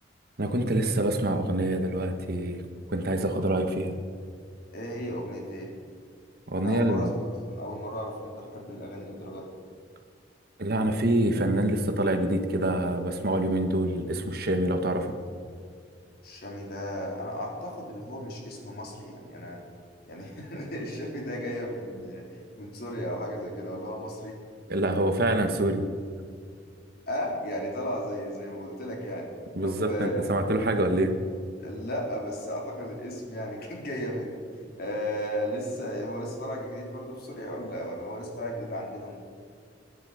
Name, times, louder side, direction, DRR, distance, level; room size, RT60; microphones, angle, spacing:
voice 1, 0.4-2.6 2.9-3.9 6.5-7.1 10.6-15.1 24.7-25.9 29.6-31.1, right 1 dB, 60° right, 6 dB, 1.5 m, -26 dB
voice 2, 4.7-5.7 6.6-7.1 7.5-9.5 16.2-19.6 20.1-24.4 27.1-29.3 29.6-30.5 31.6-34.4 34.8-39.3, equal, 55° left, -1 dB, 3.8 m, -35 dB
24.0 x 10.0 x 5.1 m, 2.2 s
head